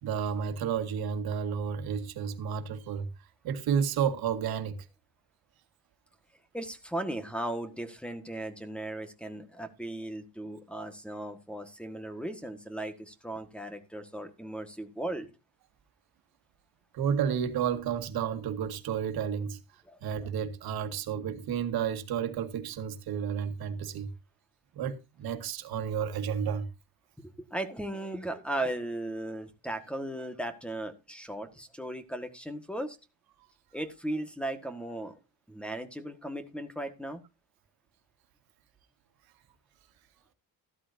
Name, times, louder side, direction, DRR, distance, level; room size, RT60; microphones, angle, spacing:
voice 1, 0.0-3.1 3.4-4.8 16.9-19.6 20.0-24.1 24.7-26.7, right 7 dB, 70° right, 2.0 m, -31 dB
voice 2, 6.5-15.3 19.9-20.0 27.2-33.0 33.7-35.1 35.5-37.2, right 1 dB, 5° left, 1.6 m, -37 dB
14.0 x 13.0 x 2.7 m
cardioid pair, 120°, 38 cm